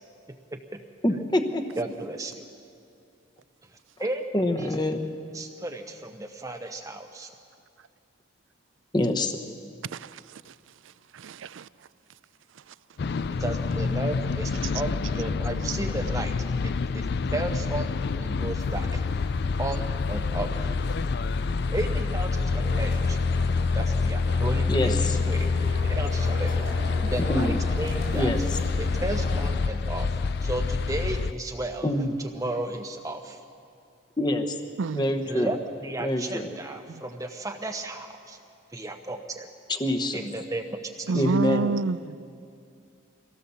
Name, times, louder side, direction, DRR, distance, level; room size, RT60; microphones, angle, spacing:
voice 1, 0.5-0.8 1.8-2.4 4.0-4.2 4.6-4.7 5.3-7.3 13.4-16.4 16.6-19.0 19.6-20.8 21.7-23.2 23.7-25.5 25.8-26.5 27.0-28.3 28.8-31.9 32.4-33.4 35.3-38.4 38.7-39.5 40.1-40.8 41.1-41.2, right 2 dB, 15° right, 4 dB, 0.6 m, -34 dB
voice 2, 1.0-1.7 4.3-5.1 8.9-9.4 24.7-25.2 27.3-27.6 28.1-28.6 31.8-32.1 34.2-34.4 34.9-35.5 36.0-36.5 39.7-40.3 41.1-41.8, left 1 dB, 20° left, 5 dB, 1.0 m, -25 dB
voice 3, 9.9-10.5 11.1-11.7 12.7-12.8 14.6-14.7 34.8-35.1 36.9-37.0 41.1-42.2, right 4 dB, 75° right, 17 dB, 0.4 m, -29 dB
sound 1, 13.0-31.3, left 4 dB, 55° left, 0.4 m, -27 dB
sound 2, 18.6-29.5, equal, 80° left, 7.0 m, -40 dB
24.0 x 17.0 x 7.0 m, 2.5 s
head